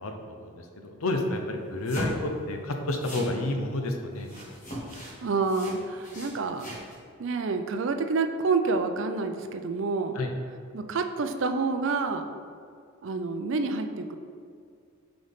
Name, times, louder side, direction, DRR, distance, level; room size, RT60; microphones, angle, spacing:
voice 1, 0.0-4.3 10.1-10.3, left 2 dB, 80° left, 4 dB, 0.7 m, -30 dB
sound 1, 1.8-2.4 3.0-3.3 4.2-5.2 5.4-6.9, equal, 35° left, 1.5 m, -38 dB
voice 2, 5.0-6.8 7.2-10.2 10.7-12.3 13.0-14.2, right 4 dB, 60° right, 7 dB, 0.4 m, -28 dB
7.5 x 3.9 x 3.5 m, 2.3 s
head